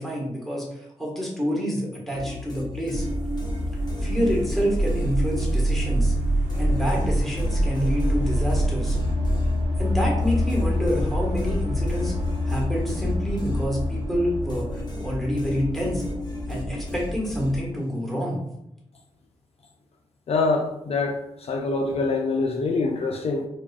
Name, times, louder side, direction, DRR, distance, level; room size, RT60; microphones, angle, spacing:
voice 1, 0.0-3.1 4.0-6.1 6.5-9.0 9.8-12.1 12.5-16.0 16.5-18.4, equal, ahead, -3 dB, 1.4 m, -27 dB
sound 1, 2.1-6.1 6.5-14.1 14.5-18.0, left 1 dB, 35° left, 0.9 m, -36 dB
sound 2, 2.9-17.0, equal, 85° right, 0.8 m, -26 dB
voice 2, 20.3-23.5, left 3 dB, 60° left, 2 dB, 0.4 m, -25 dB
4.8 x 2.3 x 2.4 m, 0.81 s
cardioid pair, 70°, 12 cm